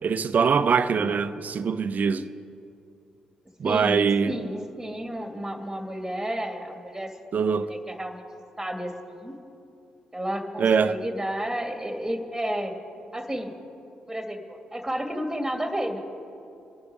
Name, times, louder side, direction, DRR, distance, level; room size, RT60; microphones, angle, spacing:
voice 1, 0.0-2.3 3.6-4.4 7.3-7.7 10.6-11.0, right 6 dB, 50° right, 0.7 m, -23 dB
voice 2, 3.6-7.1 7.4-8.2 8.6-9.3 10.1-12.7 13.1-13.5 14.1-16.0, equal, 10° right, 2.3 m, -32 dB
27.5 x 9.5 x 4.9 m
hypercardioid pair, 40°, 4 cm